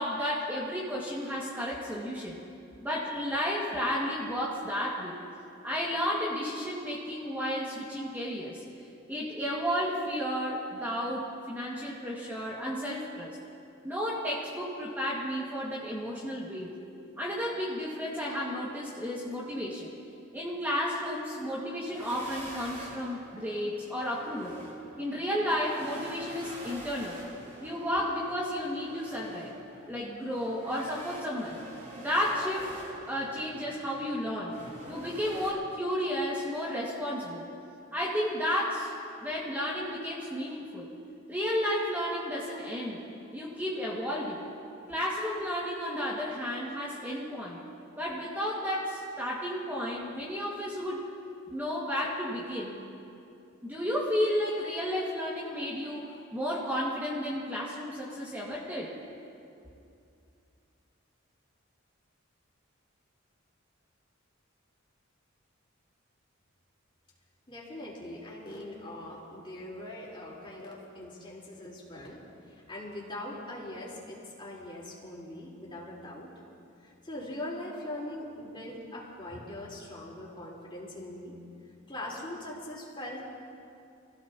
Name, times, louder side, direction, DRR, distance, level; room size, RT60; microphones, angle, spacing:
voice 1, 0.0-2.4 2.8-5.2 5.6-8.6 9.1-13.4 13.8-16.7 17.2-19.9 20.3-24.6 25.0-27.2 27.6-29.5 29.9-31.6 32.0-32.7 33.1-34.5 34.9-37.5 37.9-38.9 39.2-40.9 41.3-43.1 43.3-44.4 44.9-47.6 48.0-51.1 51.5-52.8 53.6-58.9, equal, 10° right, -6 dB, 1.9 m, -32 dB
sound 1, 21.9-35.5, right 1 dB, 40° right, 3.9 m, -46 dB
voice 2, 67.5-72.2 72.5-76.3 76.8-81.3 81.9-83.3, left 1 dB, 25° left, -5 dB, 3.9 m, -41 dB
29.0 x 16.0 x 2.9 m, 2.6 s
head